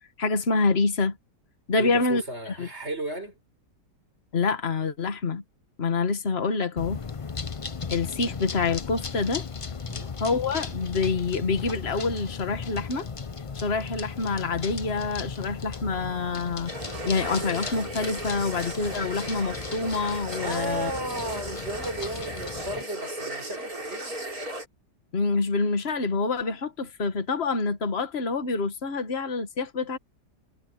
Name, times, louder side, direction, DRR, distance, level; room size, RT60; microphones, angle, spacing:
voice 1, 0.2-1.2 1.7-2.7 4.3-5.4 5.8-7.0 7.9-9.5 10.2-13.1 13.5-16.7 17.1-20.9 25.1-30.0, left 4 dB, 35° left, 1.8 m, -27 dB
voice 2, 1.7-3.4 9.8-10.2 20.4-24.2, right 2 dB, 35° right, 6.0 m, -34 dB
sound 1, 6.8-22.8, left 5 dB, 55° left, 0.3 m, -36 dB
sound 2, 16.7-24.7, right 1 dB, 55° right, 6.4 m, -36 dB
omnidirectional pair, 1.9 m